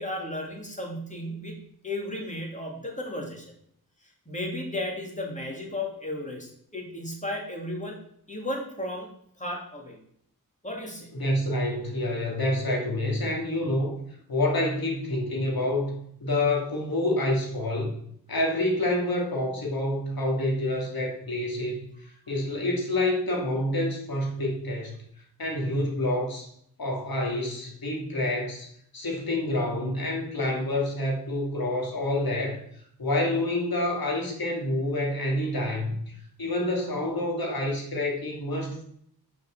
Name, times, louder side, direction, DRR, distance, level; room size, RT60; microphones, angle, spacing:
voice 1, 0.0-1.6 1.8-3.5 4.3-8.0 8.3-9.1 9.4-10.0 10.6-11.1, left 1 dB, 20° left, 0 dB, 2.7 m, -34 dB
voice 2, 11.1-14.0 14.3-17.9 18.3-25.0 25.4-26.5 26.8-28.7 28.9-32.6 33.0-36.0 36.4-38.8, left 1 dB, 65° left, -1 dB, 2.7 m, -28 dB
6.8 x 5.3 x 6.9 m, 0.68 s
wide cardioid pair, 75°, 38 cm